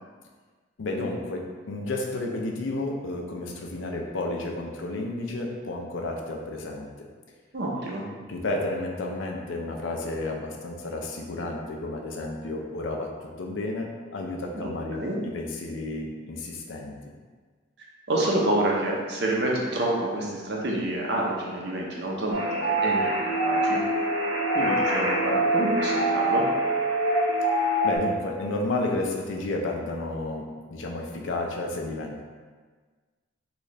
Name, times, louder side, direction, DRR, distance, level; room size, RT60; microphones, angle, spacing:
voice 1, 0.8-7.1 8.3-15.0 15.3-17.0 27.8-32.2, left 2 dB, 80° left, 0 dB, 0.5 m, -31 dB
voice 2, 7.5-8.1 14.5-15.2 17.8-23.8 24.5-26.5, right 1 dB, 60° right, -2 dB, 0.7 m, -28 dB
sound 1, 22.3-28.0, right 1 dB, 90° right, 1.0 m, -24 dB
4.0 x 2.4 x 3.1 m, 1.5 s
head